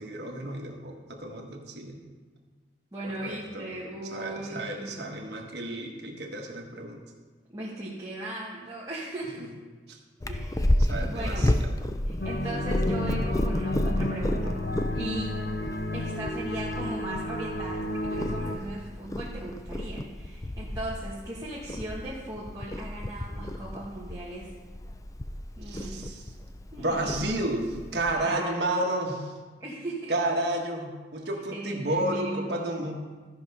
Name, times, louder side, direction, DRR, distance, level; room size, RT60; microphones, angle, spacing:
voice 1, 0.0-2.1 3.0-3.7 4.0-7.0 9.4-9.5 9.9-10.0 10.8-11.7 25.7-26.2 26.8-29.3 30.1-32.9, right 1 dB, 65° right, 1 dB, 1.4 m, -31 dB
voice 2, 2.9-5.0 7.5-9.5 10.3-10.6 11.1-11.5 12.0-14.5 14.9-15.3 15.9-24.5 25.6-26.1 26.7-27.1 28.2-28.6 29.6-30.1 31.5-32.8, right 1 dB, 20° right, -6 dB, 1.4 m, -38 dB
Purr, 10.2-28.1, left 1 dB, 20° left, 0.4 m, -31 dB
sound 1, 12.2-18.6, left 1 dB, 70° left, 0.8 m, -32 dB
14.0 x 5.7 x 5.4 m, 1.4 s
head